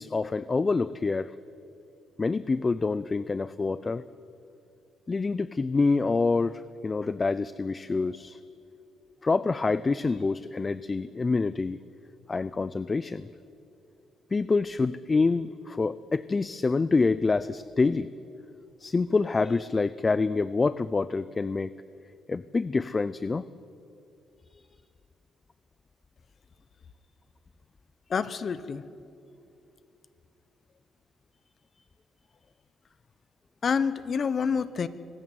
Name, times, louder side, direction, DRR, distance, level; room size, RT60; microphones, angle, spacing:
voice 1, 0.0-1.3 2.2-4.0 5.1-8.4 9.2-11.8 12.3-13.3 14.3-18.1 18.8-21.7 22.3-23.4 24.5-24.6, left 3 dB, 30° left, 16 dB, 0.5 m, -26 dB
voice 2, 28.1-28.8 33.6-34.9, left 6 dB, 45° left, 15 dB, 1.0 m, -27 dB
24.0 x 13.5 x 9.3 m, 2.7 s
cardioid pair, 90°, 0 cm